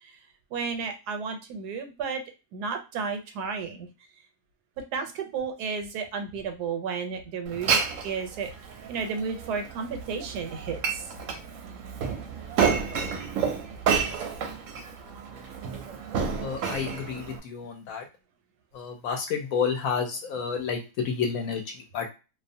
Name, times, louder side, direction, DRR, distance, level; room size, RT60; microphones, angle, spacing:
voice 1, 0.5-2.2 2.5-3.9 4.9-8.5 8.9-11.0, right 5 dB, 90° right, 5 dB, 1.2 m, -32 dB
Glass, 7.5-17.4, right 6 dB, 70° right, 0.8 m, -30 dB
voice 2, 16.4-18.0 18.7-22.1, left 6 dB, 70° left, 4 dB, 0.9 m, -30 dB
2.6 x 2.1 x 2.6 m, 0.30 s
omnidirectional pair, 1.7 m